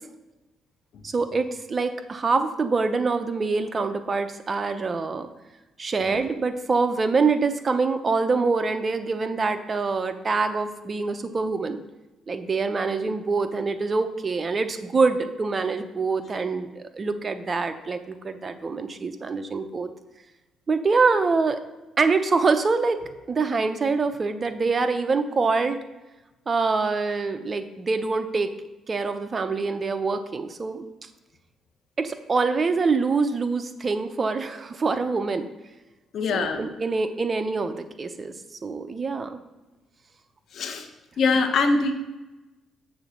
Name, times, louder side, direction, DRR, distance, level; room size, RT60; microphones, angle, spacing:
voice 1, 1.0-5.3 5.8-11.8 12.3-19.9 20.7-21.6 22.0-25.8 26.5-28.5 28.9-30.9 32.0-35.5 36.3-38.3 38.6-39.4, right 4 dB, 35° right, 9 dB, 0.7 m, -25 dB
voice 2, 36.1-36.6 40.5-40.9 41.2-41.9, left 4 dB, 65° left, 6 dB, 1.0 m, -22 dB
7.1 x 3.8 x 6.3 m, 1.1 s
cardioid pair, 90°, 0 cm